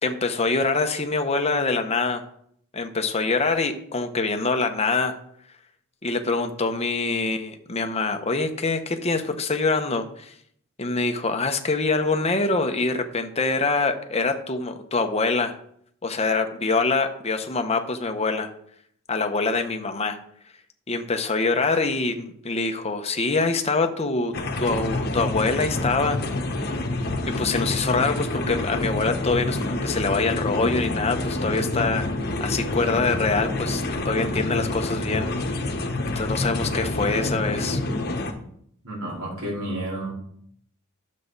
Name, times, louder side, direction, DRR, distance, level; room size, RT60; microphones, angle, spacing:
voice 1, 0.0-2.2 2.7-5.2 6.0-10.3 10.8-15.5 16.0-18.5 19.1-20.2 20.9-24.3 24.6-26.2 27.4-32.1 32.4-35.7 36.0-37.8, left 3 dB, 30° left, 6 dB, 1.0 m, -25 dB
sound 1, 24.3-38.3, left 2 dB, 45° left, 1.3 m, -27 dB
voice 2, 38.8-40.1, right 1 dB, 80° right, -6 dB, 4.4 m, -31 dB
12.0 x 7.4 x 4.1 m, 0.68 s
head